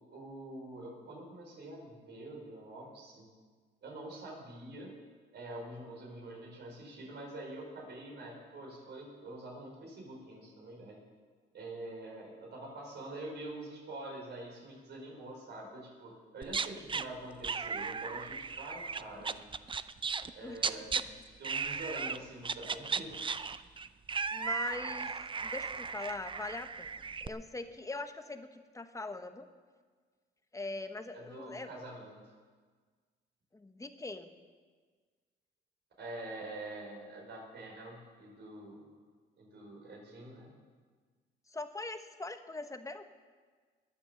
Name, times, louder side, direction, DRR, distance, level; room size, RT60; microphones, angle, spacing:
voice 1, 0.1-3.3 3.8-4.9 5.3-11.0 11.5-19.3 20.3-21.1 21.4-23.2 31.1-32.2 36.0-39.0 39.4-40.5, right 2 dB, 60° right, -2 dB, 5.0 m, -45 dB
sound 1, 16.4-17.0 17.4-20.3 20.6-21.0 21.4-22.2 22.4-27.3, right 5 dB, 25° right, 0.5 m, -36 dB
voice 2, 24.3-25.1 25.4-26.9 27.2-29.5 30.5-31.7 33.5-34.3 41.5-43.1, left 2 dB, 15° left, 8 dB, 1.1 m, -41 dB
21.0 x 7.3 x 7.0 m, 1.5 s
cardioid pair, 90°, 20 cm